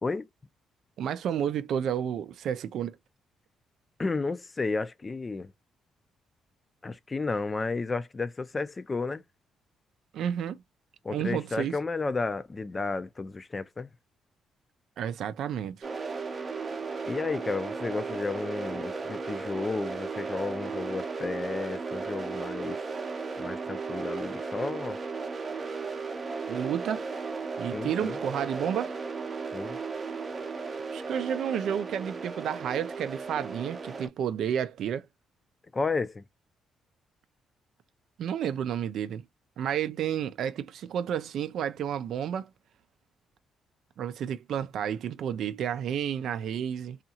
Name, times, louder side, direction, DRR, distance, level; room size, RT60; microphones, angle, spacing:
voice 1, 1.0-3.0 10.1-10.6 11.1-11.8 15.0-15.9 26.5-27.0 27.6-28.9 30.9-35.1 38.2-39.2 39.6-42.5 44.0-47.0, right 9 dB, 70° right, 0.3 m, -31 dB
voice 2, 4.0-5.5 6.8-9.2 11.0-13.9 17.1-22.8 23.4-25.0 27.7-28.2 29.5-29.8 35.7-36.2, left 3 dB, 25° left, 0.4 m, -32 dB
sound 1, 15.8-34.1, right 4 dB, 35° right, 0.6 m, -35 dB
2.7 x 2.4 x 2.7 m
cardioid pair, 90°, 0 cm